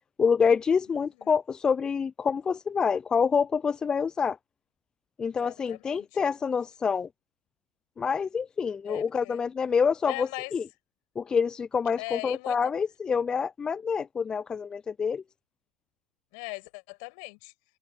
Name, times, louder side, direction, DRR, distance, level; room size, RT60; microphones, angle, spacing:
voice 1, 0.2-4.4 5.2-7.1 8.0-10.6 11.2-15.2, left 6 dB, 20° left, 0.6 m, -27 dB
voice 2, 0.9-1.4 5.3-6.2 8.8-9.4 10.1-10.5 12.0-12.7 16.3-17.5, left 36 dB, 50° left, 7.3 m, -40 dB
hypercardioid pair, 95°, 4 cm